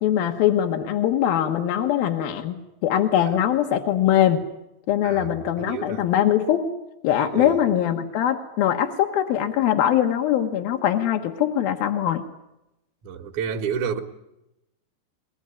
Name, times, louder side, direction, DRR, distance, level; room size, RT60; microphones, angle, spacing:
voice 1, 0.0-4.4 4.9-6.7 7.0-12.2, left 10 dB, 65° left, 2.9 m, -22 dB
voice 2, 5.6-6.1 7.3-7.6 13.0-14.0, right 7 dB, 55° right, 2.4 m, -29 dB
22.0 x 21.0 x 9.9 m
omnidirectional pair, 5.0 m